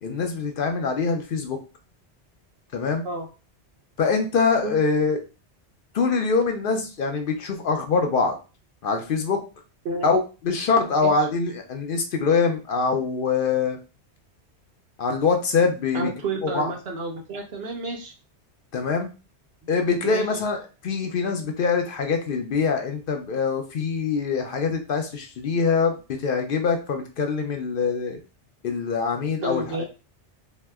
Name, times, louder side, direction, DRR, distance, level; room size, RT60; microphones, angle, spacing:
voice 1, 0.0-1.6 2.7-3.0 4.0-5.2 5.9-8.4 8.8-9.4 10.0-10.2 10.4-13.8 15.0-16.1 16.4-16.7 18.7-19.1 19.7-20.6 20.8-28.2 28.6-29.8, left 5 dB, 60° left, 4 dB, 0.6 m, -24 dB
voice 2, 15.9-18.1 20.0-20.3 29.4-29.8, right 2 dB, 65° right, 2 dB, 0.8 m, -30 dB
2.8 x 2.1 x 3.3 m, 0.32 s
omnidirectional pair, 1.2 m